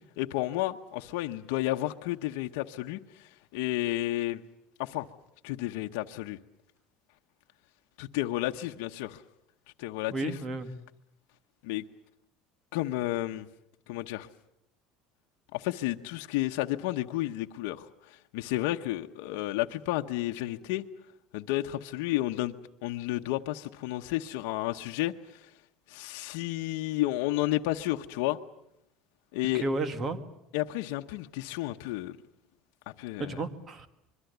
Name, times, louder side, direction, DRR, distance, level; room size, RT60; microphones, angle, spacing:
voice 1, 0.2-4.4 4.8-5.1 5.4-6.4 8.0-9.2 9.8-10.4 11.6-11.8 12.7-13.5 13.9-14.3 15.5-20.8 21.3-22.5 22.8-25.5 25.9-28.4 29.3-29.7 30.5-32.2 33.0-33.4, left 16 dB, 80° left, 4 dB, 0.9 m, -31 dB
voice 2, 10.1-10.7 29.6-30.2 33.2-33.9, right 3 dB, 30° right, 10 dB, 1.9 m, -32 dB
25.5 x 22.5 x 8.0 m, 0.79 s
cardioid pair, 145°, 0 cm